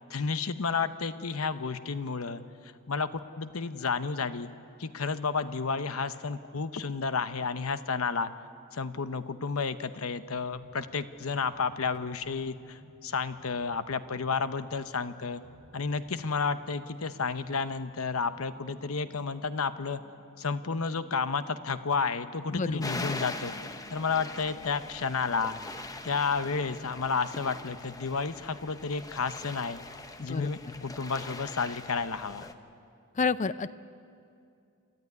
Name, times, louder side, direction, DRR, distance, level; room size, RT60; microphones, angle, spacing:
voice 1, 0.1-4.5 4.8-8.3 8.7-15.4 15.7-20.0 20.4-23.5 23.9-25.6 26.0-29.8 30.2-32.5, left 5 dB, 70° left, 11 dB, 0.9 m, -31 dB
sound 1, 10.3-27.7, equal, 20° right, 1.4 m, -54 dB
voice 2, 22.5-23.0 30.2-30.8 33.1-33.8, left 4 dB, 35° left, 16 dB, 0.5 m, -31 dB
sound 2, 22.8-32.5, left 2 dB, 15° left, 0.8 m, -42 dB
28.0 x 13.5 x 9.7 m, 2.5 s
head